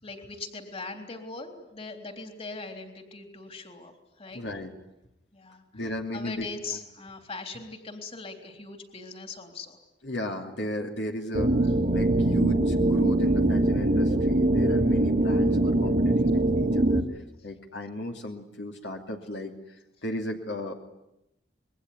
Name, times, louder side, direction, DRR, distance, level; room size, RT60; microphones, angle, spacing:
voice 1, 0.0-4.4 5.3-5.8 6.1-9.8, left 3 dB, 35° left, 6 dB, 3.6 m, -40 dB
voice 2, 4.3-4.7 5.7-6.8 10.0-20.7, left 1 dB, 70° left, 3 dB, 2.7 m, -36 dB
sound 1, 11.3-17.0, right 1 dB, 50° right, 1.6 m, -22 dB
27.0 x 22.0 x 9.7 m, 0.88 s
head